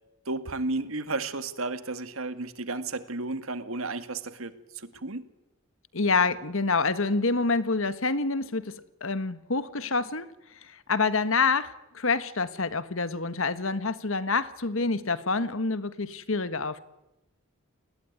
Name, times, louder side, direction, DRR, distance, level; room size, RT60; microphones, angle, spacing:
voice 1, 0.3-5.3, right 3 dB, 75° right, 11 dB, 2.0 m, -33 dB
voice 2, 5.9-10.3 10.6-16.8, left 4 dB, 70° left, 14 dB, 1.4 m, -27 dB
29.5 x 20.0 x 9.5 m, 0.95 s
head